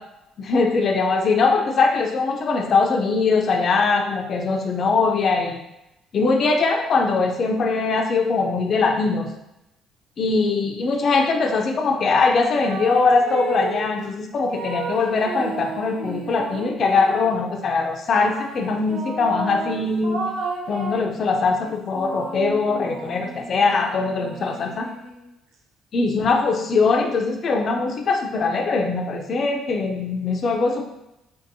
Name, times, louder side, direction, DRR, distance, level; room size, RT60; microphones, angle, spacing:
voice 1, 0.4-5.6 6.1-9.3 10.2-20.2 20.7-24.9 25.9-30.8, left 4 dB, 45° left, 3 dB, 0.4 m, -21 dB
sound 1, 12.5-14.0 14.5-17.4 18.3-21.1 21.7-25.3, right 4 dB, 65° right, 0.5 m, -33 dB
3.8 x 2.6 x 2.6 m, 0.89 s
cardioid pair, 135°, 0 cm